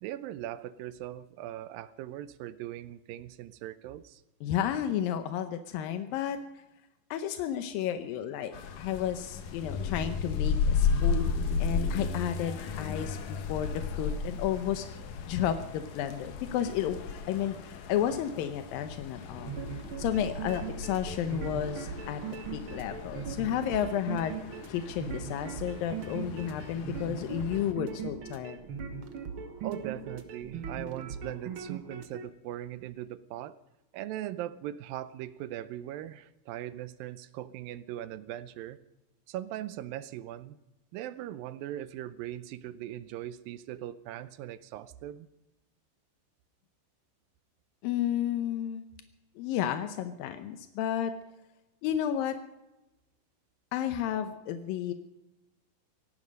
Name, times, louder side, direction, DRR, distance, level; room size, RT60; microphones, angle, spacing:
voice 1, 0.0-4.2 29.6-33.6 33.9-38.8 39.3-40.6 40.9-45.3, right 13 dB, 85° right, 15 dB, 2.5 m, -40 dB
voice 2, 4.4-6.4 7.1-11.2 11.6-13.2 13.5-15.0 15.3-17.0 17.3-17.6 17.9-19.5 20.0-22.2 22.5-24.4 24.7-28.6 47.8-48.9 49.4-51.1 51.8-52.4 53.7-54.9, left 10 dB, 85° left, 8 dB, 2.6 m, -32 dB
sound 1, 8.5-27.7, left 5 dB, 70° left, 2.9 m, -35 dB
sound 2, 19.3-32.2, right 6 dB, 55° right, 1.5 m, -40 dB
18.0 x 15.0 x 5.3 m, 0.94 s
omnidirectional pair, 4.0 m